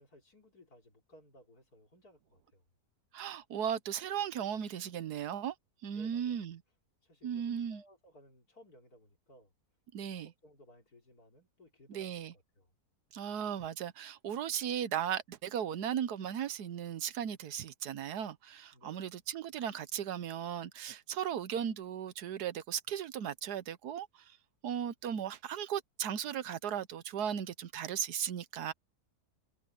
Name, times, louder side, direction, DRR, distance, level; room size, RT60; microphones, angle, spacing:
voice 1, 0.0-2.6 5.9-6.4 7.0-9.5 10.0-12.7 18.7-19.0, left 1 dB, 70° left, 4.6 m, -60 dB
voice 2, 3.1-5.5 5.8-6.6 7.2-7.8 9.9-10.3 11.9-12.3 13.1-24.2 24.6-28.7, right 9 dB, 85° right, 1.5 m, -36 dB
omnidirectional pair, 1.7 m